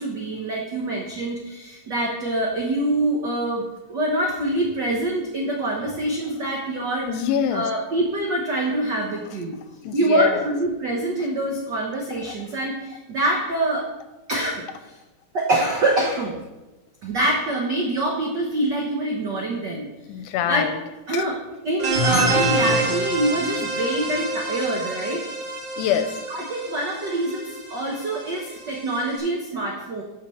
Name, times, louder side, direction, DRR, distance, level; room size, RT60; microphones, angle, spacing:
voice 1, 0.0-7.1 7.5-9.6 9.9-13.9 14.3-15.0 15.3-16.3 17.0-19.9 20.4-20.7 21.1-21.4 21.6-25.2 26.3-30.0, right 1 dB, 85° right, 0 dB, 0.9 m, -25 dB
voice 2, 7.1-7.7 9.8-10.5 20.1-20.8 21.1-21.2 25.8-26.2, left 9 dB, 85° left, 10 dB, 2.2 m, -24 dB
sound 1, 21.8-29.1, right 2 dB, 40° right, 2.6 m, -27 dB
12.5 x 5.2 x 4.3 m, 1.1 s
omnidirectional pair, 3.6 m